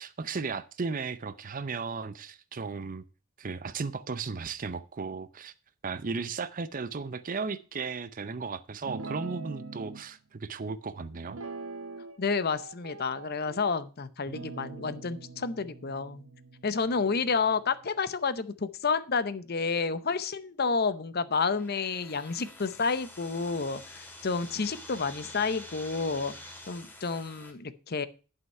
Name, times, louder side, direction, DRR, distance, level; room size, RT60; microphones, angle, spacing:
voice 1, 0.0-3.0 3.4-5.5 5.8-11.4, right 4 dB, 40° right, 0.6 m, -35 dB
Guitar, 8.8-10.0 11.3-12.2 12.5-13.7 14.3-17.7, right 4 dB, 65° right, 1.3 m, -43 dB
voice 2, 12.2-16.2 16.6-26.4 26.7-28.1, left 4 dB, 45° left, 0.7 m, -30 dB
sound 1, 21.4-27.5, left 1 dB, 10° left, 2.0 m, -47 dB
11.0 x 5.8 x 5.4 m
head